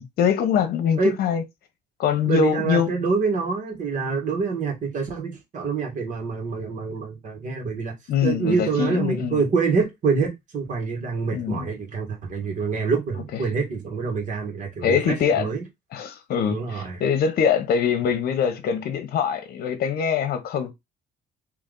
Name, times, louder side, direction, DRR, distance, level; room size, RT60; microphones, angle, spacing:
voice 1, 0.0-1.4 2.0-2.9 8.1-9.4 11.3-11.7 14.8-15.5 15.9-20.7, left 7 dB, 65° left, 1.0 m, -23 dB
voice 2, 2.2-7.9 8.2-15.6 16.5-17.0, right 5 dB, 50° right, 1.7 m, -26 dB
3.4 x 3.0 x 3.9 m
cardioid pair, 110°, 17 cm